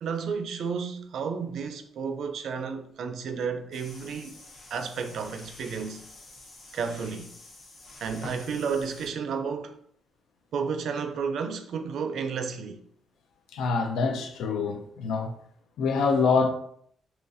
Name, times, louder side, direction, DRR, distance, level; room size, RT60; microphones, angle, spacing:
voice 1, 0.0-4.4 4.7-6.0 6.7-7.3 8.0-9.8 10.5-12.8, right 6 dB, 60° right, 0.4 m, -32 dB
sound 1, 3.7-9.1, left 1 dB, 40° left, 0.8 m, -47 dB
voice 2, 13.5-15.3 15.8-16.5, left 4 dB, 85° left, 0.5 m, -25 dB
4.0 x 2.9 x 2.5 m
cardioid pair, 170°, 0 cm